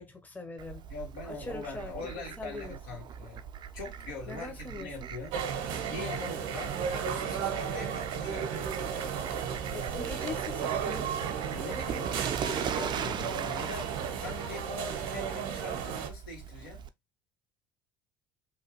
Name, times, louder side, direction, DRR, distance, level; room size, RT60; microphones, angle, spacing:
voice 1, 0.0-0.9 1.2-2.8 4.3-4.9 9.7-11.1, left 3 dB, 15° left, 0.8 m, -42 dB
Fowl, 0.6-16.9, right 8 dB, 45° right, 0.4 m, -41 dB
voice 2, 0.9-3.5 3.7-5.4 5.9-8.8 11.5-16.9, left 3 dB, 85° left, 1.5 m, -42 dB
sound 1, 5.3-16.1, right 7 dB, 70° right, 0.7 m, -34 dB
3.1 x 2.3 x 3.0 m
hypercardioid pair, 70°, 11 cm